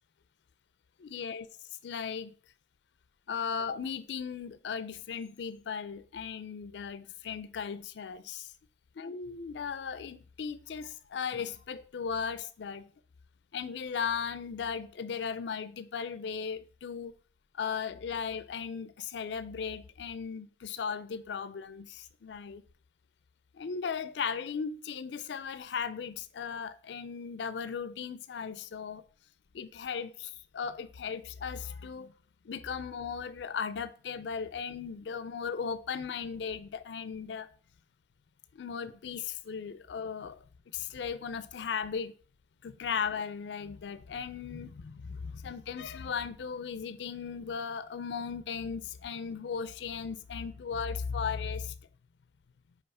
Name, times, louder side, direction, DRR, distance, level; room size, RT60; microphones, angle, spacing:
voice 1, 1.0-1.5 1.8-2.3 3.3-8.5 9.0-12.9 13.5-17.1 17.5-22.6 23.5-29.0 29.5-32.1 32.4-37.5 38.5-40.4 40.7-42.1 42.6-51.7, left 6 dB, 85° left, 0.4 m, -37 dB
5.5 x 4.7 x 5.4 m
head